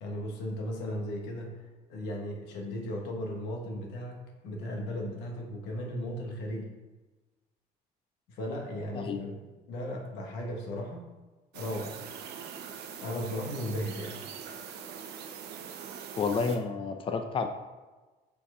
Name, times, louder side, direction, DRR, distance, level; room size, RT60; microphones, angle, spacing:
voice 1, 0.0-6.7 8.3-9.4 9.7-11.1 11.5-12.0 13.0-14.2, left 1 dB, 90° left, 1 dB, 1.4 m, -36 dB
sound 1, 11.5-16.6, right 7 dB, 75° right, 0.7 m, -42 dB
voice 2, 16.2-17.5, left 5 dB, 30° left, 6 dB, 0.5 m, -30 dB
5.5 x 4.6 x 4.9 m, 1.2 s
cardioid pair, 110°, 17 cm